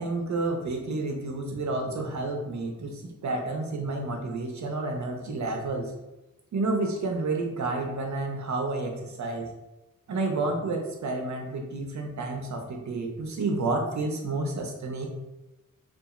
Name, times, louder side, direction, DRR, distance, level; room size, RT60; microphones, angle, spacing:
voice 1, 0.0-5.9 6.5-9.5 10.1-15.1, right 2 dB, 60° right, 2 dB, 0.6 m, -30 dB
2.8 x 2.4 x 2.4 m, 0.99 s
wide cardioid pair, 100°, 33 cm